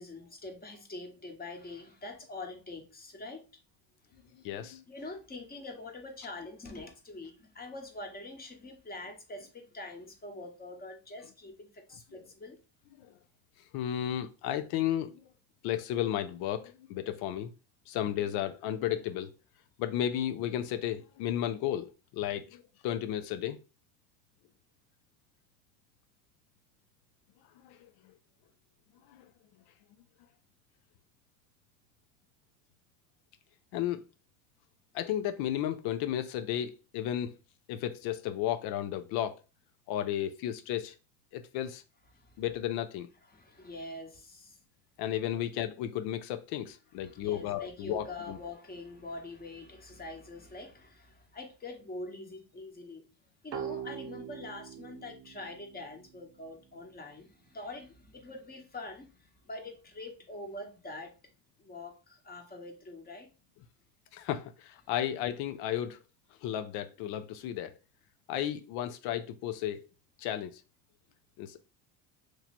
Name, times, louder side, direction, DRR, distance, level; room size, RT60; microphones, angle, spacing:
voice 1, 0.0-3.5 4.9-12.6 42.1-42.3 43.3-44.6 47.0-53.1 53.4-61.1 61.6-63.3, left 2 dB, 25° left, 1.1 m, -44 dB
voice 2, 4.4-4.8 13.0-13.1 13.7-15.2 15.6-17.5 17.9-19.3 19.8-23.6 27.6-28.1 29.1-29.2 33.7-34.0 34.9-37.3 37.7-39.4 39.9-41.0 41.3-41.8 42.4-43.1 45.0-48.4 64.1-66.0 66.4-67.7 68.3-69.8 70.2-70.6 71.4-71.6, left 11 dB, 75° left, 0.5 m, -33 dB
sound 1, 53.5-57.0, right 8 dB, 45° right, 0.6 m, -43 dB
3.0 x 2.8 x 4.2 m
cardioid pair, 110°, 38 cm